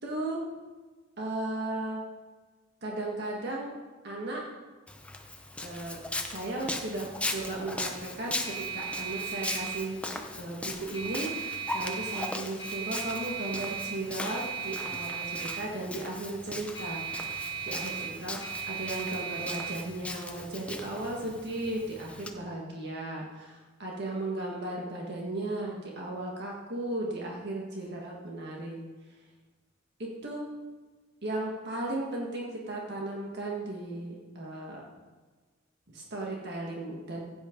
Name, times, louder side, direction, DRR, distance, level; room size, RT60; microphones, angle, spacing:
voice 1, 0.0-0.4 1.2-2.0 2.8-3.8 4.0-4.4 5.6-6.0 6.2-10.0 10.3-18.4 18.7-28.8 30.0-30.5 31.2-34.9 35.9-37.2, right 2 dB, 60° right, -2 dB, 1.8 m, -36 dB
Walk footsteps, 4.9-22.3, left 2 dB, 5° left, 0.8 m, -39 dB
sound 1, 5.8-22.5, right 7 dB, 30° left, 4.0 m, -39 dB
15.5 x 8.9 x 3.9 m, 1.3 s
head